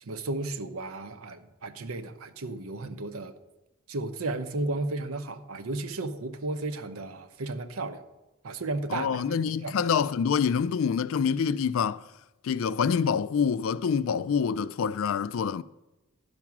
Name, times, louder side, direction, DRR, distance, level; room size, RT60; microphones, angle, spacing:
voice 1, 0.0-3.3 3.9-8.0 8.4-9.8, right 2 dB, 80° right, 0.8 m, -34 dB
voice 2, 8.9-12.0 12.4-15.6, left 6 dB, 70° left, 0.3 m, -26 dB
10.5 x 6.0 x 6.0 m
head